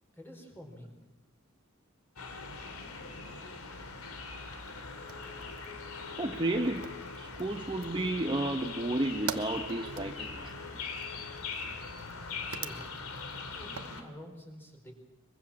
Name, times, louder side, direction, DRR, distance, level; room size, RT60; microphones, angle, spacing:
voice 1, 0.1-0.9 12.5-12.9 13.5-14.9, equal, 10° left, 2 dB, 4.4 m, -48 dB
sound 1, 2.2-14.0, left 4 dB, 80° left, 2.6 m, -42 dB
Fire, 4.6-14.0, right 7 dB, 80° right, 1.1 m, -47 dB
Wind instrument woodwind instrument, 4.9-11.7, left 8 dB, 55° left, 4.3 m, -52 dB
voice 2, 6.2-6.9 7.2-10.6, right 1 dB, 25° right, 3 dB, 1.0 m, -32 dB
23.0 x 22.5 x 7.3 m, 1.1 s
head